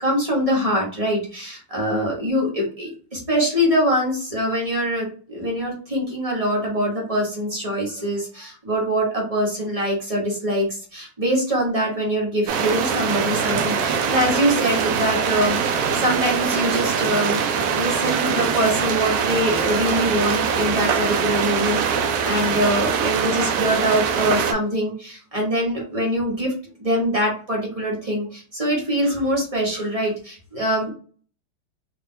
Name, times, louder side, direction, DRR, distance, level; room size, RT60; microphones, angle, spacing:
voice 1, 0.0-26.5 26.8-30.9, equal, 25° right, -3 dB, 0.7 m, -23 dB
sound 1, 12.5-24.5, right 6 dB, 80° right, 0.8 m, -23 dB
3.3 x 2.5 x 3.6 m, 0.41 s
omnidirectional pair, 2.2 m